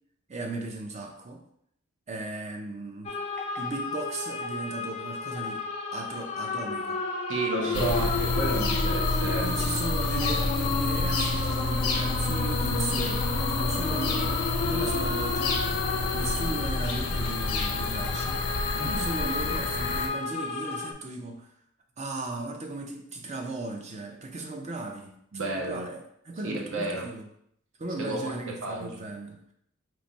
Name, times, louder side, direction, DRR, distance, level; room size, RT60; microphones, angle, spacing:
voice 1, 0.3-1.4 2.1-3.2 3.6-5.6 5.9-7.0 7.6-8.2 9.5-15.6 16.1-18.4 19.0-21.5 22.0-27.3 27.8-29.5, right 2 dB, 30° right, 2 dB, 0.5 m, -36 dB
sound 1, 3.0-20.9, left 3 dB, 30° left, 0.4 m, -33 dB
sound 2, 3.4-4.7 5.0-5.9 6.2-7.8 8.2-8.6 8.9-9.6 10.0-10.8 11.1-12.8 13.2-13.8 14.1-14.4 15.2-15.5 16.1-17.3 17.6-17.7 18.1-18.6 19.1-19.7, left 4 dB, 5° left, 0.7 m, -48 dB
voice 2, 7.3-9.6 18.7-19.1 25.3-25.8 26.4-27.0 28.0-28.3 28.6-29.0, right 2 dB, 60° right, -1 dB, 0.9 m, -31 dB
sound 3, 7.7-20.1, left 3 dB, 90° left, 0.6 m, -28 dB
3.2 x 2.5 x 4.0 m, 0.71 s
head